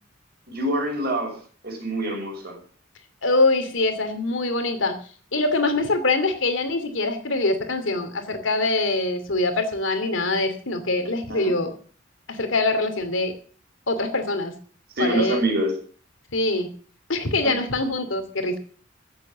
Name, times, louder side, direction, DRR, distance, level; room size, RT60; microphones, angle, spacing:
voice 1, 0.5-1.4 1.6-2.6 11.3-11.5 14.9-15.7 17.4-17.6, right 1 dB, 55° right, 1 dB, 6.6 m, -25 dB
voice 2, 3.2-5.0 5.3-11.7 12.3-13.3 13.9-14.5 15.0-15.4 16.3-16.7 17.1-18.6, left 2 dB, 75° left, 8 dB, 2.7 m, -24 dB
14.5 x 8.2 x 7.5 m, 0.43 s
head